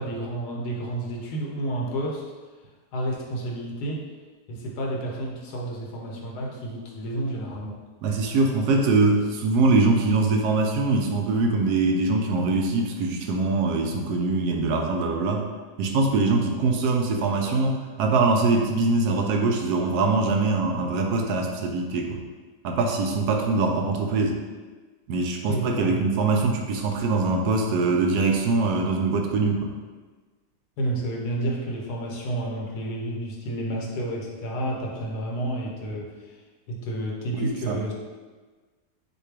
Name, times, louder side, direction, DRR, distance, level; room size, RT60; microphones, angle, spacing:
voice 1, 0.0-2.2 2.9-4.0 4.5-7.8 25.5-26.0 30.8-36.3 36.7-37.9, right 1 dB, 75° left, -2 dB, 1.4 m, -30 dB
voice 2, 8.0-15.4 15.8-22.2 22.6-24.4 25.1-29.7 37.4-37.8, right 3 dB, 75° right, 2 dB, 1.1 m, -23 dB
6.6 x 2.3 x 3.3 m, 1.4 s
omnidirectional pair, 1.7 m